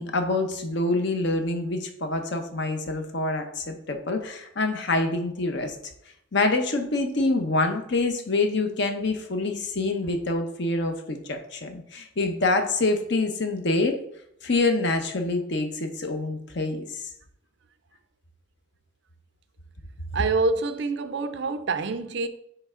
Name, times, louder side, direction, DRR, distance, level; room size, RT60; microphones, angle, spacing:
voice 1, 0.0-5.8 6.3-14.0 14.4-17.0, left 2 dB, 55° left, 0.8 m, -26 dB
voice 2, 20.1-22.3, right 3 dB, 55° right, 0.4 m, -26 dB
9.6 x 3.3 x 3.7 m
head